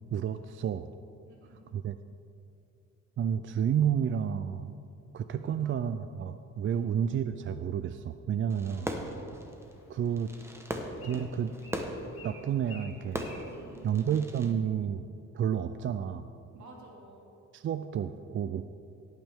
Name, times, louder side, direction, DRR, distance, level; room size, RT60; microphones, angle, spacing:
voice 1, 0.1-0.9 1.7-2.0 3.2-4.8 5.1-8.9 9.9-10.3 11.0-11.5 12.2-13.2 13.8-15.1 15.3-16.3 17.5-18.6, right 8 dB, 40° right, 10 dB, 0.4 m, -30 dB
voice 2, 1.2-1.6 5.4-5.7 6.7-6.9 8.7-9.3 13.5-14.2 16.5-17.3, right 2 dB, 70° right, -1 dB, 2.8 m, -53 dB
Fireworks, 8.5-14.5, right 1 dB, 10° right, 1.1 m, -39 dB
Bird, 9.4-14.6, left 2 dB, 45° left, 2.6 m, -54 dB
17.0 x 9.0 x 3.6 m, 2.6 s
cardioid pair, 90°, 30 cm